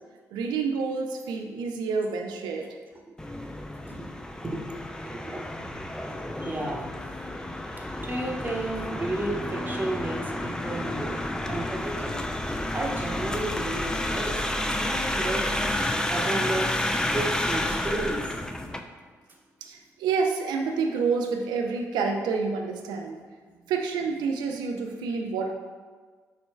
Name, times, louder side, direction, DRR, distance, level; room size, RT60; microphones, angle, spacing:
voice 1, 0.3-2.8 19.6-23.2 23.7-25.5, right 5 dB, 70° right, 3 dB, 0.4 m, -28 dB
sound 1, 3.2-18.8, left 1 dB, 10° left, 0.4 m, -30 dB
voice 2, 3.8-4.6 5.0-5.5 6.3-6.9 8.0-11.2 11.5-12.1 12.4-14.4 14.7-15.4 16.1-18.2, right 1 dB, 25° right, -2 dB, 0.9 m, -32 dB
6.4 x 3.0 x 2.2 m, 1.5 s
hypercardioid pair, 40°, 8 cm